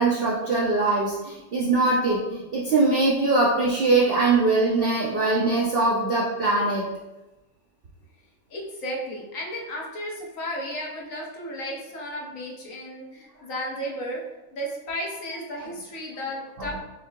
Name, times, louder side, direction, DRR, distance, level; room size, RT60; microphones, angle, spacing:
voice 1, 0.0-6.8 16.6-16.7, right 3 dB, 60° right, -5 dB, 0.6 m, -22 dB
voice 2, 8.5-14.2 14.5-16.8, equal, 60° left, -2 dB, 1.1 m, -34 dB
6.2 x 2.7 x 2.4 m, 1.0 s
omnidirectional pair, 1.7 m